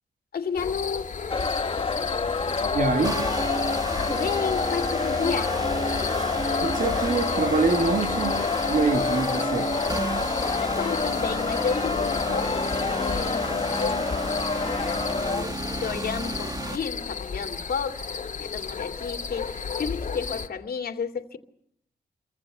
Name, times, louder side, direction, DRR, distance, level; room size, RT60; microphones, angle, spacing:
voice 1, 0.3-1.1 4.1-5.6 10.6-12.5 12.9-14.1 14.4-14.5 15.1-21.4, left 6 dB, 75° left, 2.6 m, -32 dB
sound 1, 0.6-20.5, left 5 dB, 50° left, 2.3 m, -34 dB
sound 2, 1.3-15.4, left 4 dB, 35° left, 1.5 m, -28 dB
voice 2, 2.7-3.3 6.6-9.8, right 4 dB, 60° right, 3.2 m, -25 dB
sound 3, 3.0-16.8, right 2 dB, 25° right, 2.5 m, -33 dB
29.0 x 24.5 x 6.8 m
wide cardioid pair, 105°, 16 cm